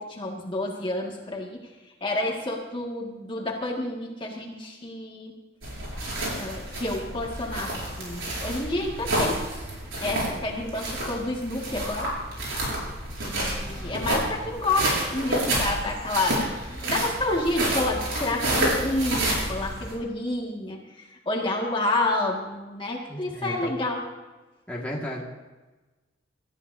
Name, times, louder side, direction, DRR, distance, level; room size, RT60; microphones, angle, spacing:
voice 1, 0.0-1.6 2.0-5.3 6.4-9.4 10.0-12.1 13.2-20.8 21.3-24.0, left 2 dB, 25° left, -1 dB, 1.9 m, -29 dB
sound 1, 5.6-19.9, right 1 dB, 85° right, 6.3 m, -29 dB
voice 2, 13.7-14.3 23.1-23.7 24.7-25.2, equal, 5° left, -4 dB, 1.9 m, -35 dB
26.0 x 14.0 x 2.7 m, 1.2 s
head